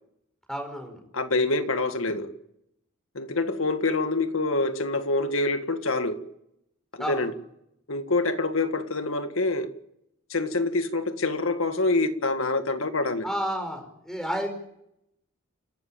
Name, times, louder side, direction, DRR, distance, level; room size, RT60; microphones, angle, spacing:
voice 1, 0.5-1.0 7.0-7.3 13.2-14.5, equal, ahead, 4 dB, 5.1 m, -31 dB
voice 2, 1.1-2.3 3.1-6.2 6.9-7.3 7.9-9.8 10.3-13.3, left 2 dB, 75° left, 8 dB, 1.9 m, -26 dB
28.5 x 13.0 x 8.7 m, 0.78 s
head